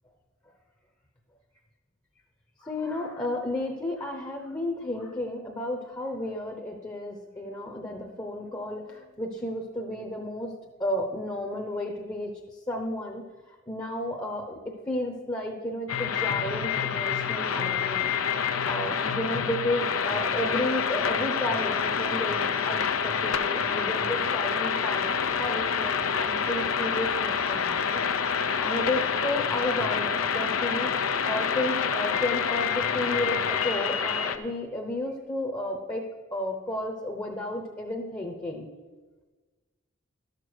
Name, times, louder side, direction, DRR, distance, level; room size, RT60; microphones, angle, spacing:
voice 1, 2.6-10.5 10.8-18.1 18.4-28.1 28.6-36.0 36.3-38.7, left 1 dB, 20° left, 2 dB, 0.8 m, -32 dB
sound 1, 15.9-34.4, left 6 dB, 90° left, 0.6 m, -27 dB
12.0 x 6.6 x 6.2 m, 1.3 s
head